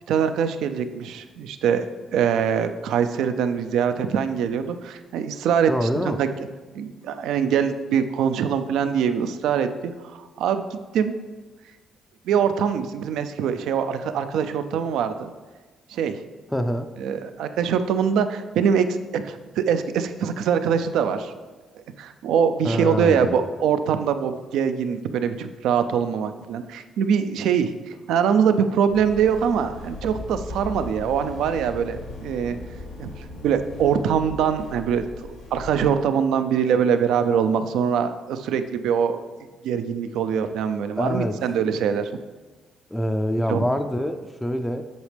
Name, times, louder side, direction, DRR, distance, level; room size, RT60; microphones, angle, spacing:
voice 1, 0.1-6.3 6.7-10.7 10.9-11.1 12.3-15.3 15.9-16.2 17.0-21.3 22.0-27.7 28.1-32.6 33.0-33.1 33.4-39.2 39.6-42.1 43.5-43.6, right 7 dB, 85° right, 10 dB, 0.4 m, -23 dB
voice 2, 5.7-6.2 16.5-16.9 22.6-23.4 41.0-41.4 42.9-44.8, equal, 5° left, 6 dB, 0.4 m, -25 dB
sound 1, 28.9-35.9, left 2 dB, 85° left, 2.3 m, -38 dB
8.0 x 6.4 x 3.4 m, 1.3 s
cardioid pair, 90°, 0 cm